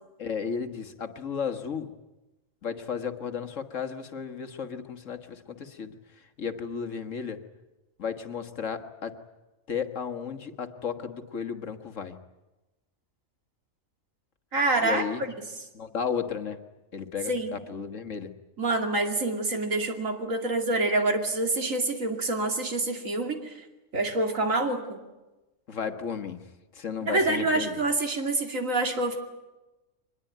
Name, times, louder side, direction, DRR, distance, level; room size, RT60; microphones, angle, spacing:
voice 1, 0.2-1.9 2.6-7.4 8.0-9.2 9.7-12.1 14.8-15.2 15.7-16.6 16.9-18.3 25.7-26.4 26.7-27.8, left 6 dB, 70° left, 8 dB, 1.8 m, -34 dB
voice 2, 14.5-15.0 17.3-17.5 18.6-23.5 23.9-25.0 27.1-29.2, right 2 dB, 80° right, 4 dB, 3.0 m, -26 dB
24.0 x 20.5 x 9.3 m, 1.1 s
omnidirectional pair, 1.4 m